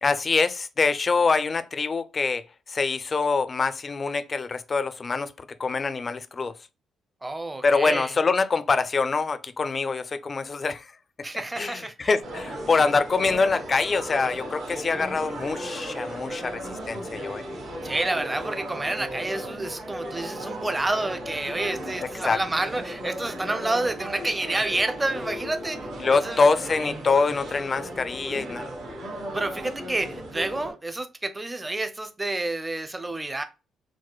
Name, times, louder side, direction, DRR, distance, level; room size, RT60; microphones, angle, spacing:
voice 1, 0.0-6.5 7.6-10.9 11.6-16.6 16.9-17.5 22.2-22.4 26.0-28.7, left 4 dB, 35° left, 0.3 m, -25 dB
voice 2, 7.2-8.1 11.2-12.1 17.8-25.8 26.1-26.5 29.3-33.4, right 2 dB, 15° right, 0.5 m, -29 dB
sound 1, 12.2-30.7, right 1 dB, 80° right, 1.4 m, -36 dB
4.7 x 2.1 x 2.3 m
cardioid pair, 90°, 0 cm